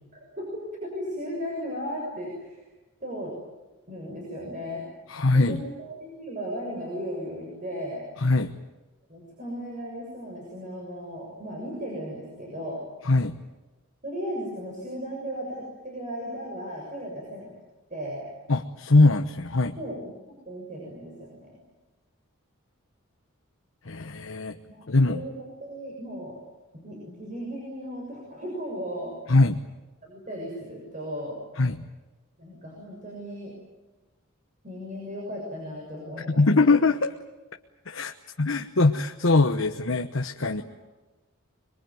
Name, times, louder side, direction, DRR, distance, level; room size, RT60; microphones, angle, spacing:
voice 1, 0.1-2.6 3.0-3.3 3.9-4.9 5.3-8.1 9.1-12.8 14.0-17.5 17.9-18.3 19.8-21.6 24.6-26.4 26.7-29.2 30.0-31.4 32.4-33.5 34.6-36.4 40.6-40.7, equal, 35° right, -1 dB, 6.8 m, -36 dB
voice 2, 5.1-5.6 8.2-8.6 13.0-13.4 18.5-19.8 23.8-24.6 24.9-25.2 29.3-29.6 31.6-31.9 36.3-37.1 37.9-40.6, left 3 dB, 65° left, 5 dB, 1.1 m, -22 dB
25.0 x 23.0 x 9.4 m, 1.2 s
head